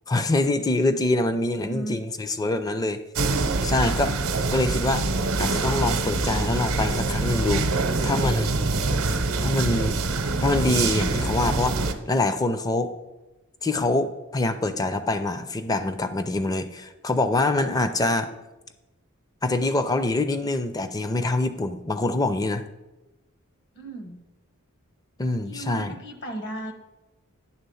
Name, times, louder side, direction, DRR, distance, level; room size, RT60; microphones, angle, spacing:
voice 1, 0.1-3.0 3.6-4.2 4.4-5.1 5.4-8.5 9.4-10.0 10.4-11.8 12.1-12.9 13.6-18.3 19.4-22.6 25.2-25.9, left 2 dB, 15° left, 10 dB, 0.4 m, -25 dB
voice 2, 1.5-2.0 7.8-8.4 23.7-24.3 25.4-26.7, right 1 dB, 50° left, 4 dB, 1.1 m, -36 dB
sound 1, 3.2-11.9, right 3 dB, 80° right, 0.7 m, -25 dB
10.0 x 3.7 x 6.9 m, 1.1 s
head